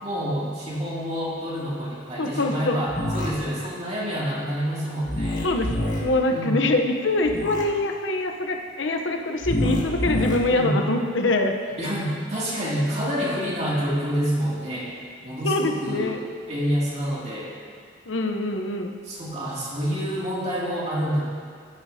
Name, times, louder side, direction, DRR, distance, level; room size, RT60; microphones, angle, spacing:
voice 1, 0.0-5.4 6.3-6.6 10.5-10.8 11.8-14.9 15.2-16.1 16.5-17.5 19.0-21.2, equal, 35° right, -6 dB, 2.4 m, -27 dB
voice 2, 2.2-2.8 3.2-3.3 5.4-5.7 6.0-11.5 15.4-16.2 18.1-18.9, left 2 dB, 90° left, 3 dB, 0.8 m, -24 dB
sound 1, 2.9-3.3 5.1-6.0 7.2-7.6 9.4-10.4, left 1 dB, 45° left, 1.9 m, -26 dB
16.0 x 8.3 x 2.7 m, 2.1 s
head